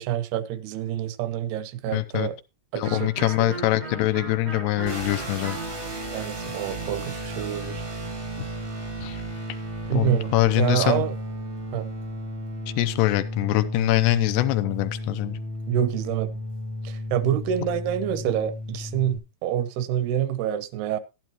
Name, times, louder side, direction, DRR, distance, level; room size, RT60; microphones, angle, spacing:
voice 1, 0.0-2.4 2.7-3.5 6.1-7.8 9.9-11.1 11.7-11.9 15.7-16.3 16.8-21.0, right 11 dB, 80° right, 2.6 m, -27 dB
voice 2, 1.9-2.3 2.8-5.6 9.0-9.2 9.9-11.1 12.8-15.4, left 16 dB, 80° left, 2.7 m, -23 dB
Electric guitar, 2.8-8.4, right 3 dB, 25° right, 0.9 m, -39 dB
sound 1, 4.8-19.2, equal, 50° right, 0.6 m, -34 dB
12.0 x 12.0 x 3.0 m
omnidirectional pair, 4.9 m